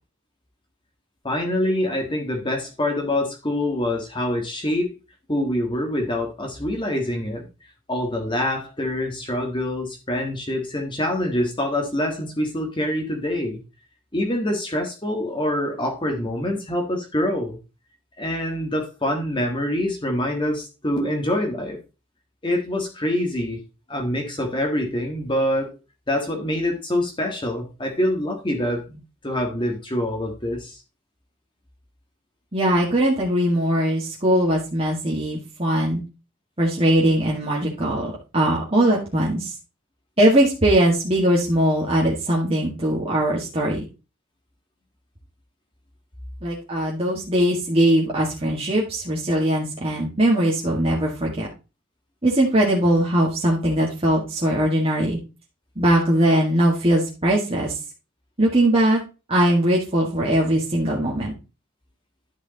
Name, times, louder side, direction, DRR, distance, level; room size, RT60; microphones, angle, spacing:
voice 1, 1.2-4.9 5.3-7.5 7.9-13.6 14.1-17.6 18.2-21.8 22.4-23.6 23.9-25.8 26.1-30.8, left 1 dB, 25° left, 2 dB, 1.6 m, -25 dB
voice 2, 32.5-36.0 36.6-39.5 40.2-43.9 46.4-51.5 52.2-55.2 55.8-57.8 58.4-59.0 59.3-61.3, right 1 dB, 30° right, -4 dB, 1.9 m, -20 dB
11.0 x 4.9 x 4.0 m, 0.29 s
head